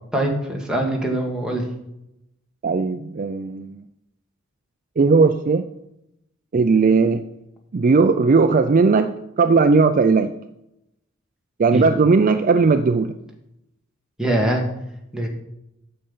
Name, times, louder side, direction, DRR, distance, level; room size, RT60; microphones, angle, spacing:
voice 1, 0.1-1.6 11.7-11.8 14.2-14.6 15.1-15.3, right 1 dB, 5° right, -1 dB, 1.8 m, -22 dB
voice 2, 2.6-3.8 5.0-5.7 6.5-7.2 7.7-9.1 9.4-10.3 11.6-13.1, right 4 dB, 40° right, 9 dB, 0.4 m, -17 dB
8.8 x 6.7 x 5.5 m, 0.84 s
head